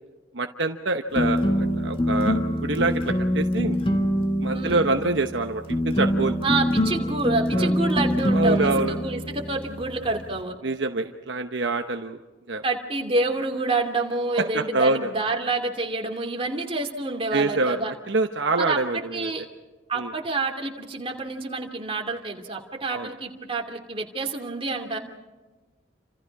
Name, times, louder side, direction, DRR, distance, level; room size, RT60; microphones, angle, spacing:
voice 1, 0.3-3.8 4.4-6.4 7.5-7.7 8.3-8.9 10.6-12.2 12.5-12.6 14.4-15.1 17.3-17.8 18.1-19.3 20.0-20.1 22.9-23.1, right 2 dB, 65° right, 5 dB, 1.0 m, -26 dB
sound 1, 1.1-10.4, equal, 30° left, 1.9 m, -25 dB
voice 2, 4.5-4.9 6.4-10.6 12.6-17.9 18.6-19.5 19.9-25.0, right 3 dB, 30° right, 2 dB, 2.7 m, -28 dB
29.0 x 27.0 x 4.8 m, 1.2 s
head